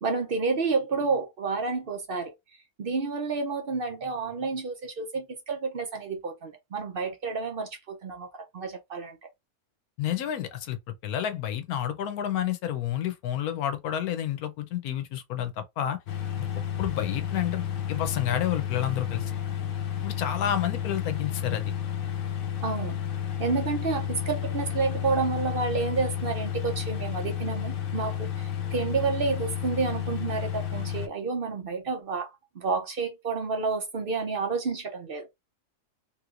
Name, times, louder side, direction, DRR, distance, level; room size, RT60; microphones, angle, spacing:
voice 1, 0.0-2.3 2.8-9.2 22.6-23.0 23.4-32.3 32.6-35.3, right 4 dB, 55° right, 0.7 m, -30 dB
voice 2, 10.0-10.8 11.0-16.0 16.6-19.2 20.0-21.7, left 10 dB, 85° left, 1.2 m, -30 dB
sound 1, 16.1-31.1, left 9 dB, 65° left, 0.9 m, -31 dB
3.3 x 3.0 x 2.4 m
omnidirectional pair, 1.5 m